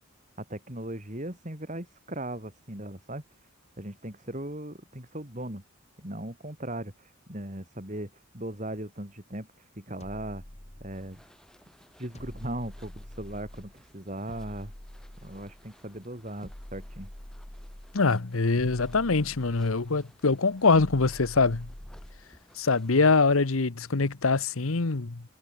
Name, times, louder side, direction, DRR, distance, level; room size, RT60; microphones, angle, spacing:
voice 1, 0.4-3.2 3.8-5.6 6.0-10.4 10.8-11.2 12.0-14.7 15.2-17.1, right 1 dB, 35° right, 4.4 m, -38 dB
sound 1, 10.0-11.3 12.2-13.8 14.3-15.7 16.4-18.0 18.6-20.0 20.7-22.3, left 1 dB, 30° left, 2.3 m, -45 dB
sound 2, 10.9-23.1, equal, 5° left, 7.2 m, -59 dB
voice 2, 17.9-21.7 22.6-25.2, left 4 dB, 80° left, 1.0 m, -24 dB
head